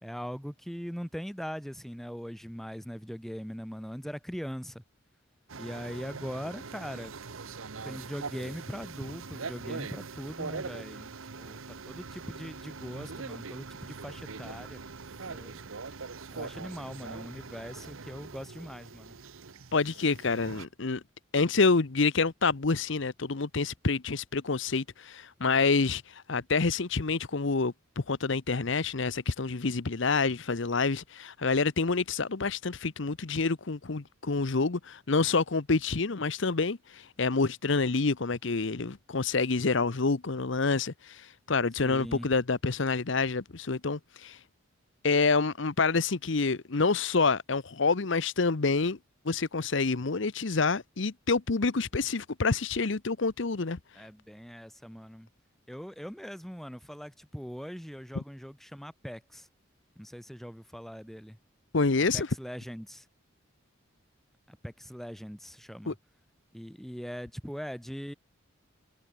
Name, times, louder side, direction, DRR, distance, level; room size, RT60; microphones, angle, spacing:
voice 1, 0.0-4.8 5.6-7.1 7.8-14.8 15.3-15.6 16.3-19.2 41.8-42.3 53.9-55.3 55.7-59.5 60.0-61.4 62.1-63.1 64.5-66.0 66.5-68.1, equal, ahead, 2.3 m, -41 dB
sound 1, 5.5-20.7, right 4 dB, 85° right, 1.1 m, -42 dB
voice 2, 19.7-21.0 21.3-44.4 45.0-49.0 49.2-53.8 61.7-62.3 65.9-66.0, left 4 dB, 60° left, 0.9 m, -27 dB
head